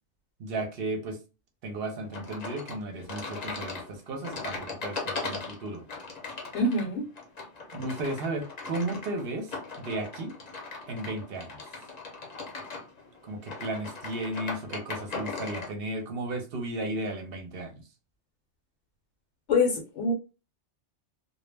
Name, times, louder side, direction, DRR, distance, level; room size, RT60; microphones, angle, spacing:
voice 1, 0.4-1.2 1.6-5.8 7.7-10.3 10.9-11.5 13.2-17.7, right 2 dB, 60° right, 0.8 m, -34 dB
sound 1, 2.1-15.7, left 3 dB, 45° left, 0.7 m, -39 dB
voice 2, 6.5-7.1 19.5-20.1, left 3 dB, 70° left, 0.9 m, -25 dB
2.2 x 2.0 x 3.2 m
omnidirectional pair, 1.2 m